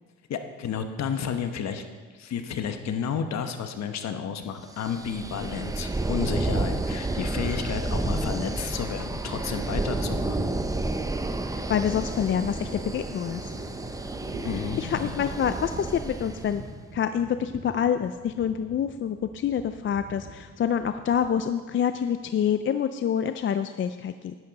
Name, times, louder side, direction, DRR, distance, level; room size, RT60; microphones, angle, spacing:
voice 1, 0.3-1.8 2.1-10.5 14.4-15.2, left 7 dB, 60° left, 7 dB, 1.1 m, -32 dB
sound 1, 4.8-16.6, right 2 dB, 10° right, 0.7 m, -30 dB
Thunder, 7.9-22.7, right 2 dB, 55° right, 2.8 m, -45 dB
voice 2, 11.7-13.5 14.4-16.6 16.9-24.3, left 8 dB, 40° left, 10 dB, 0.4 m, -27 dB
11.0 x 10.0 x 4.1 m, 1.5 s
cardioid pair, 90°, 30 cm